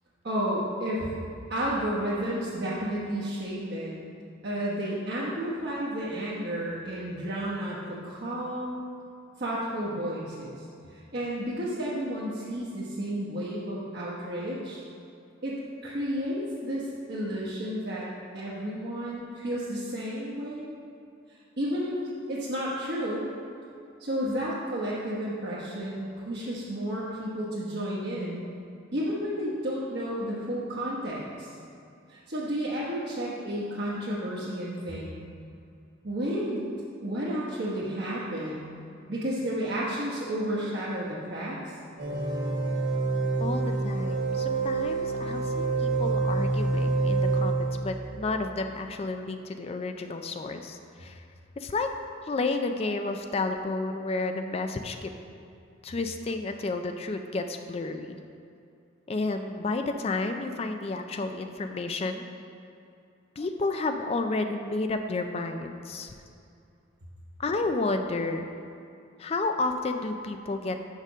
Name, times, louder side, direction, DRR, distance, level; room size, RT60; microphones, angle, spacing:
voice 1, 0.2-1.1 1.5-4.0 4.4-8.8 9.4-14.8 15.4-15.6 15.8-18.1 18.3-20.7 21.6-23.3 24.0-28.5 28.9-31.5 32.1-35.1 36.0-36.7 37.0-38.7 39.1-41.7, equal, 55° right, -8 dB, 1.1 m, -32 dB
sound 1, 42.0-48.1, right 3 dB, 85° right, 1.9 m, -27 dB
voice 2, 43.4-51.2 51.6-51.9 52.3-55.1 55.8-58.2 59.1-62.2 63.4-66.1 67.4-68.5 69.2-70.8, left 3 dB, 30° left, 6 dB, 0.4 m, -31 dB
6.5 x 5.2 x 6.1 m, 2.5 s
head